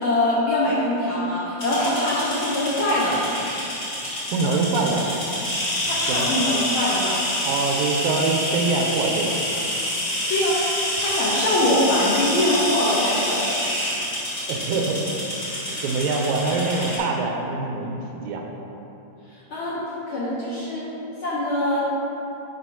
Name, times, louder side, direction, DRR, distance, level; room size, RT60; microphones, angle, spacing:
voice 1, 0.0-3.2 5.8-7.2 10.0-10.6 11.0-13.5 19.5-20.8 21.2-21.8, left 1 dB, 70° left, -8 dB, 1.3 m, -23 dB
sound 1, 1.6-17.0, left 1 dB, 30° left, 1.3 m, -27 dB
voice 2, 4.3-5.1 6.1-6.5 7.5-9.4 14.5-15.3 15.8-18.4, right 3 dB, 90° right, 1 dB, 2.1 m, -24 dB
11.0 x 4.9 x 2.9 m, 2.9 s
omnidirectional pair, 3.4 m